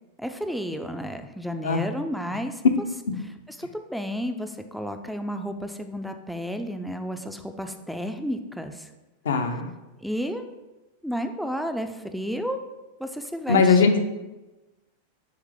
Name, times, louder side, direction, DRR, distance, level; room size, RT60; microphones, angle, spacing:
voice 1, 0.2-2.6 3.6-8.9 10.0-10.5 11.0-12.6 13.0-13.8, equal, ahead, 7 dB, 0.5 m, -32 dB
voice 2, 9.2-9.7 13.5-14.0, left 5 dB, 65° left, 6 dB, 0.7 m, -20 dB
9.4 x 3.2 x 3.7 m, 1.1 s
figure-of-eight pair, 90°, 0 cm